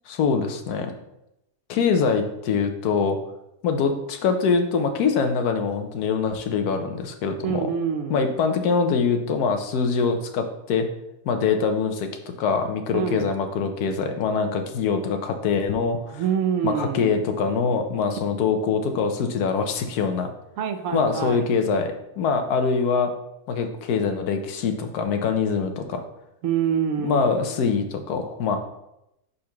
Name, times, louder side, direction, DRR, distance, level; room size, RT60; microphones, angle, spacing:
voice 1, 0.1-0.9 1.7-3.2 3.6-7.7 8.1-10.9 11.2-12.1 12.4-16.2 16.6-20.3 20.9-23.1 23.5-26.0 27.0-28.6, left 5 dB, 80° left, 6 dB, 1.3 m, -24 dB
voice 2, 7.4-8.2 12.9-13.3 16.1-17.2 20.6-21.5 26.4-27.4, right 8 dB, 65° right, 8 dB, 0.9 m, -26 dB
5.0 x 4.2 x 5.8 m, 0.86 s
omnidirectional pair, 1.6 m